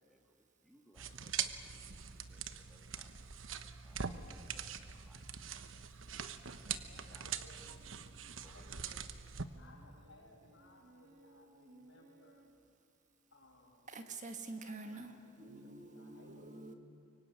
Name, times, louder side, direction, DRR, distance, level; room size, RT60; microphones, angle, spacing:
voice 1, 0.0-5.8 6.5-7.4 8.4-8.7, equal, ahead, 2.1 m, -68 dB
sound 1, 1.0-9.5, right 7 dB, 75° right, 1.2 m, -43 dB
voice 2, 6.9-7.8 8.4-9.0 9.6-12.5 13.3-13.9 14.6-16.5, left 1 dB, 65° left, 6.9 m, -62 dB
sound 2, 7.5-8.6 9.5-12.6, right 2 dB, 60° right, 2.1 m, -64 dB
voice 3, 13.9-16.7, right 3 dB, 40° right, 1.7 m, -47 dB
24.5 x 23.5 x 9.6 m
head